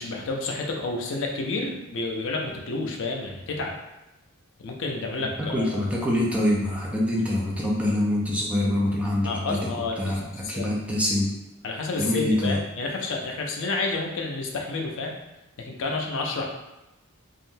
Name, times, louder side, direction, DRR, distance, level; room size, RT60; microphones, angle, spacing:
voice 1, 0.0-3.7 4.6-5.8 9.2-10.1 10.4-10.7 11.6-15.1 15.6-16.4, left 3 dB, 65° left, 1 dB, 0.5 m, -30 dB
voice 2, 5.4-9.6 10.0-11.3 12.0-12.6, left 1 dB, 5° right, -4 dB, 0.5 m, -25 dB
3.6 x 2.1 x 2.6 m, 0.95 s
head